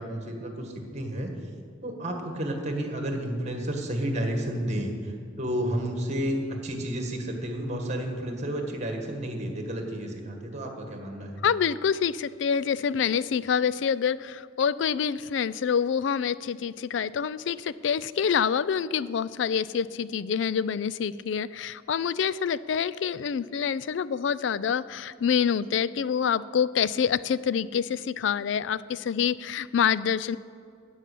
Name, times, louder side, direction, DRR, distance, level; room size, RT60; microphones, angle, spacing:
voice 1, 0.0-1.3 1.8-6.4 6.6-11.4, right 1 dB, 40° right, 3 dB, 1.6 m, -31 dB
voice 2, 11.4-30.4, left 7 dB, 70° left, 18 dB, 0.4 m, -26 dB
13.5 x 5.7 x 8.4 m, 2.4 s
head